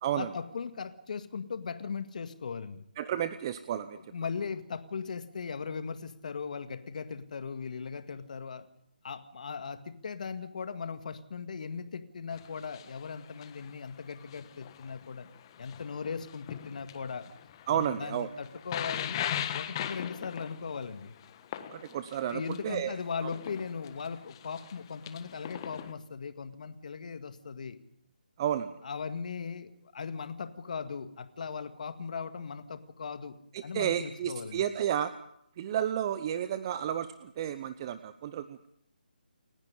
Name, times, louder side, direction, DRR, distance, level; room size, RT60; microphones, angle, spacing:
voice 1, 0.1-2.8 3.9-8.7 9.0-15.3 15.6-17.3 17.7-19.2 19.5-21.1 22.2-27.8 28.8-33.4 33.6-34.6, left 5 dB, 50° left, 9 dB, 2.0 m, -38 dB
voice 2, 3.0-4.0 17.7-18.3 21.7-23.0 23.2-23.3 28.4-28.7 33.5-35.1 35.6-38.7, right 10 dB, 30° right, 12 dB, 0.8 m, -32 dB
sound 1, 12.3-25.9, left 10 dB, 30° left, 1.4 m, -40 dB
29.5 x 10.5 x 10.0 m, 0.75 s
figure-of-eight pair, 150°, 5 cm